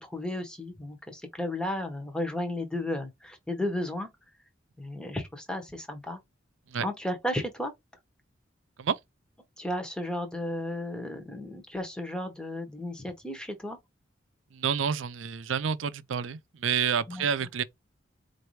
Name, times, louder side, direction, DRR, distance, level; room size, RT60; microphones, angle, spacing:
voice 1, 0.0-4.1 4.8-6.2 6.8-7.7 9.6-13.8 17.1-17.3, left 1 dB, 5° left, 0.9 m, -34 dB
voice 2, 14.5-17.6, right 7 dB, 85° right, 0.5 m, -29 dB
4.5 x 2.6 x 3.1 m
head